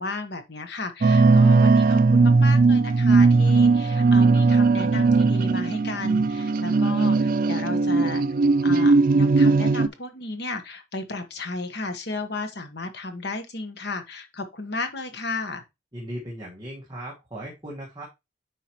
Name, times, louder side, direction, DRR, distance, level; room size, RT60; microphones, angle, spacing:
voice 1, 0.0-8.2 8.6-15.6, left 3 dB, 55° left, 1.3 m, -33 dB
sound 1, 1.0-9.9, right 3 dB, 45° right, 0.4 m, -18 dB
voice 2, 15.9-18.0, right 1 dB, 20° right, 1.6 m, -37 dB
9.3 x 5.0 x 3.0 m
head